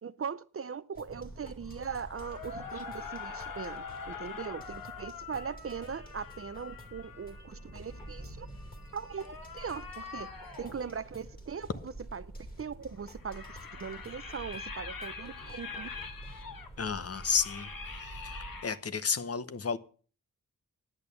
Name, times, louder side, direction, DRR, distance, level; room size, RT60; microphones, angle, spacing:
voice 1, 0.0-8.5 8.9-10.3 10.6-12.3 12.6-13.4 13.7-15.9, right 6 dB, 40° right, 0.5 m, -40 dB
sound 1, 0.9-16.4, left 1 dB, 25° left, 2.5 m, -55 dB
sound 2, 1.1-18.6, right 1 dB, ahead, 2.0 m, -49 dB
sound 3, 1.6-10.8 12.9-18.8, left 5 dB, 80° left, 1.9 m, -44 dB
voice 2, 16.8-17.7 18.0-19.8, left 5 dB, 45° left, 0.8 m, -32 dB
10.5 x 8.9 x 6.9 m
wide cardioid pair, 160°, 34 cm